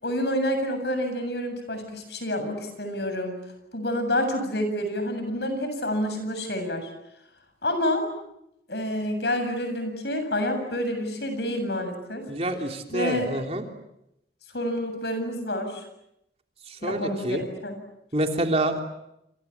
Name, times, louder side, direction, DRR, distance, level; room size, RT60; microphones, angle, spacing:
voice 1, 0.0-3.4 3.7-6.9 7.6-8.1 8.7-12.3 12.9-13.3 14.5-15.8 16.8-17.4 17.6-17.7, left 1 dB, 75° left, 7 dB, 7.7 m, -28 dB
voice 2, 12.3-13.6 16.7-17.4 18.1-18.8, right 1 dB, 35° right, 4 dB, 3.2 m, -27 dB
29.0 x 28.0 x 7.3 m, 0.83 s
head